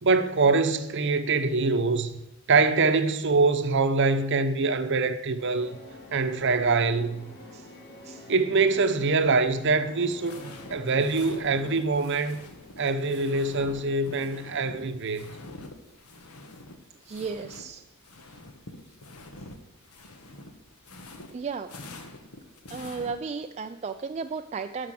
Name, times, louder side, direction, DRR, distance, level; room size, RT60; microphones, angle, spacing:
voice 1, 0.0-2.2 2.5-5.8 6.1-7.3 8.3-12.4 12.8-15.2, right 3 dB, 55° right, 0.8 m, -24 dB
sound 1, 5.4-14.0, left 1 dB, 50° left, 2.7 m, -48 dB
sound 2, 10.0-17.7 17.9-23.1, left 2 dB, 85° left, 1.3 m, -46 dB
voice 2, 17.0-17.8 21.3-21.7 22.7-24.9, right 5 dB, 30° right, 0.3 m, -34 dB
12.0 x 4.8 x 7.6 m
head